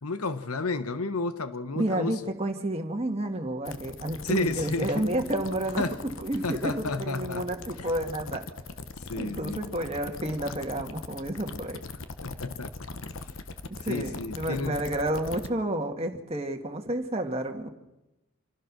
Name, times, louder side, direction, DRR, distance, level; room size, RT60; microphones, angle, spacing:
voice 1, 0.0-2.2 4.2-5.1 5.8-6.0 6.4-7.5 7.8-7.9 9.1-9.8 12.2-12.7 13.9-14.8, left 3 dB, 85° left, 1.2 m, -31 dB
voice 2, 1.8-5.8 6.2-8.4 9.1-11.8 13.7-17.7, right 1 dB, 25° right, 1.8 m, -30 dB
sound 1, 3.7-15.5, left 3 dB, 65° left, 1.1 m, -40 dB
26.0 x 16.0 x 6.1 m
head